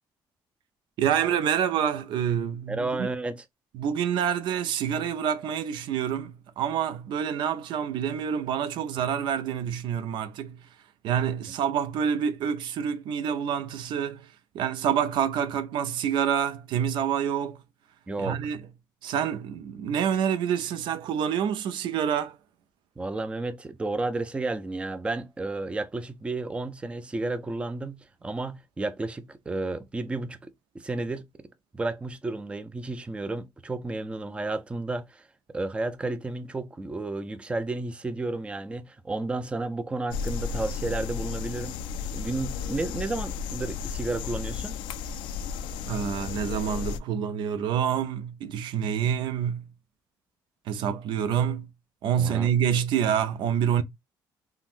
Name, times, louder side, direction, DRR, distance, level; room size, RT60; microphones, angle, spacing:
voice 1, 1.0-3.1 3.7-10.6 11.0-14.3 14.5-17.6 18.2-18.6 19.0-22.4 45.9-49.7 50.7-51.7 52.0-53.8, right 8 dB, 75° right, 0.5 m, -27 dB
voice 2, 2.7-3.5 18.1-18.4 23.0-31.3 31.7-35.2 35.5-41.8 42.1-44.8 52.2-52.5, right 2 dB, 15° right, 0.4 m, -32 dB
sound 1, 40.1-47.0, left 6 dB, 85° left, 0.3 m, -33 dB
3.8 x 2.0 x 2.4 m
cardioid pair, 125°, 8 cm